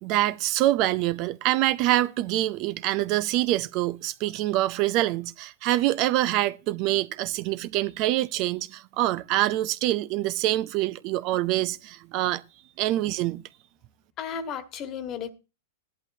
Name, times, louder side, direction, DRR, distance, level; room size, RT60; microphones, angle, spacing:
voice 1, 0.0-12.4 12.8-13.4, right 15 dB, 45° right, 0.5 m, -25 dB
voice 2, 14.2-15.3, left 7 dB, 35° left, 1.5 m, -34 dB
15.5 x 11.0 x 2.7 m
hypercardioid pair, 110°, 0 cm